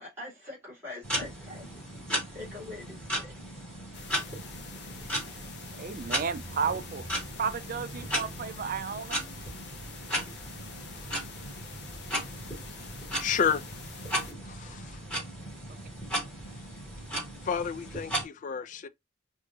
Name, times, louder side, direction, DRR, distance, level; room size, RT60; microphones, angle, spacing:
voice 1, 0.0-3.6 5.3-5.4, left 2 dB, 10° right, 2.8 m, -44 dB
sound 1, 1.0-18.2, equal, 5° left, 2.8 m, -36 dB
sound 2, 3.9-14.3, left 5 dB, 55° left, 0.7 m, -47 dB
voice 2, 5.8-7.0 7.4-9.3, right 6 dB, 45° right, 0.4 m, -33 dB
voice 3, 13.2-13.6 14.4-15.0 17.4-18.9, left 7 dB, 40° left, 0.3 m, -30 dB
5.3 x 2.6 x 2.3 m
head